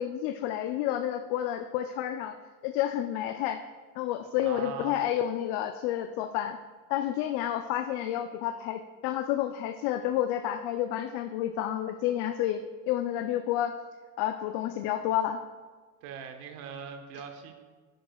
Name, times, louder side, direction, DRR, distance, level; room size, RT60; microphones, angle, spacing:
voice 1, 0.0-2.3 2.6-3.6 4.0-6.6 6.9-12.6 12.9-13.8 14.2-15.4, left 11 dB, 75° left, 7 dB, 0.5 m, -30 dB
voice 2, 4.4-5.0 16.0-17.5, right 6 dB, 90° right, 6 dB, 0.9 m, -41 dB
9.9 x 6.1 x 2.3 m, 1.4 s
supercardioid pair, 95°, 42 cm